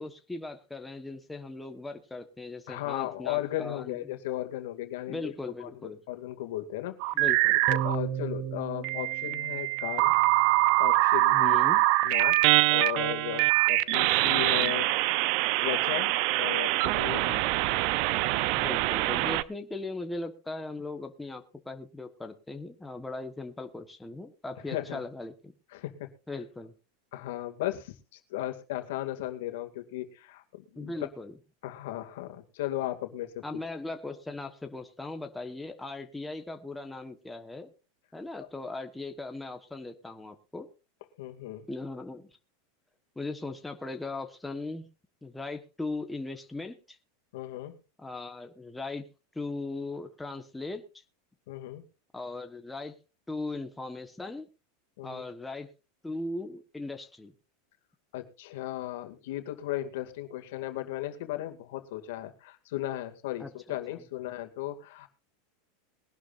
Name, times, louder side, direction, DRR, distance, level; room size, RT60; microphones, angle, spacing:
voice 1, 0.0-4.0 5.1-6.0 7.1-7.6 11.3-11.8 18.6-25.5 26.3-26.7 30.8-31.3 33.4-37.7 38.1-40.7 41.7-42.3 43.1-44.9 45.2-47.0 48.0-49.1 49.3-50.8 52.1-53.0 53.3-54.5 55.0-55.7 56.0-57.3 63.4-63.5 63.9-64.0, left 2 dB, 5° left, 5 dB, 1.3 m, -38 dB
voice 2, 2.7-5.3 5.6-7.0 7.7-10.1 10.8-11.6 12.0-14.9 15.6-16.1 16.4-17.6 24.7-25.0 25.7-26.1 27.1-30.9 31.6-33.4 41.2-41.7 47.3-47.7 51.5-51.8 55.0-55.2 58.1-65.1, left 14 dB, 70° left, 7 dB, 2.3 m, -36 dB
sound 1, 7.0-8.0 8.8-19.4, right 18 dB, 55° right, 0.6 m, -24 dB
sound 2, 7.7-10.3, right 10 dB, 35° right, 1.5 m, -35 dB
21.5 x 11.5 x 2.6 m, 0.31 s
supercardioid pair, 140°, 0 cm